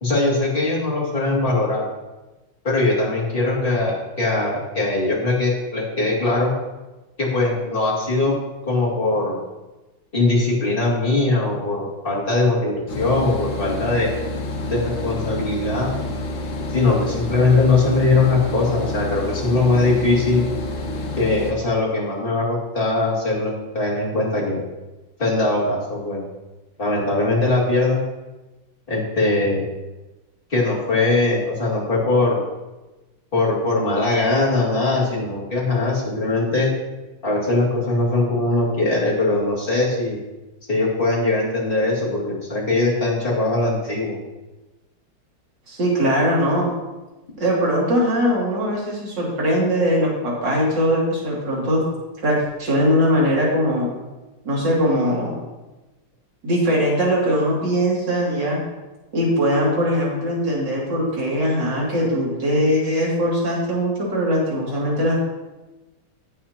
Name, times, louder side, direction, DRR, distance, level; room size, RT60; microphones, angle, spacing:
voice 1, 0.0-1.9 2.6-6.5 7.2-8.3 8.6-9.4 10.1-14.1 14.7-15.9 16.7-20.5 21.2-24.6 25.2-26.2 26.8-28.0 28.9-29.7 30.5-32.4 33.3-36.7 37.2-40.2 40.7-44.1, left 2 dB, 25° left, -5 dB, 2.7 m, -21 dB
sound 1, 12.9-21.5, left 2 dB, 75° left, 2.0 m, -28 dB
voice 2, 45.7-46.7 47.4-51.8 52.2-53.9 54.4-55.4 56.4-58.6 59.1-65.2, equal, 60° right, -4 dB, 3.3 m, -21 dB
15.5 x 7.3 x 2.9 m, 1.1 s
omnidirectional pair, 2.1 m